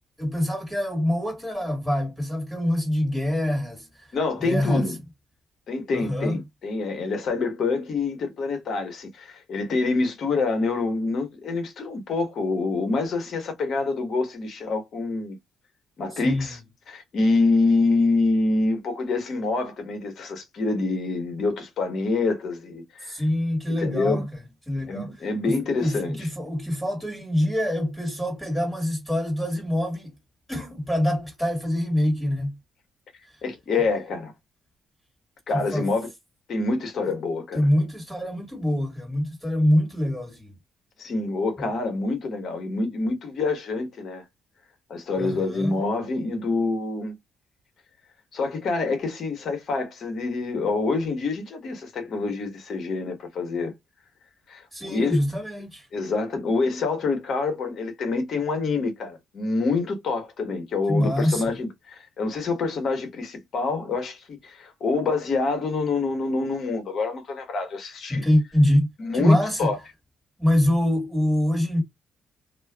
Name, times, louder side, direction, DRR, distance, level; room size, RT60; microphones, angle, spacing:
voice 1, 0.2-4.1 4.4-4.9 5.9-6.4 16.1-16.5 23.0-24.3 24.7-25.2 25.4-30.1 30.5-32.6 35.5-35.9 37.5-40.6 45.2-45.8 54.7-55.9 60.9-61.5 68.1-69.7 70.4-71.8, left 1 dB, 5° left, 1.8 m, -25 dB
voice 2, 4.1-4.9 5.7-15.4 16.0-16.6 16.9-23.1 23.8-24.2 24.9-26.2 33.4-34.3 35.5-36.1 36.5-37.7 41.0-44.2 44.9-47.2 48.3-53.7 54.5-55.2 55.9-68.2 69.0-69.3 69.6-69.8, left 3 dB, 60° left, 1.1 m, -26 dB
2.5 x 2.4 x 2.3 m
cardioid pair, 90°, 0 cm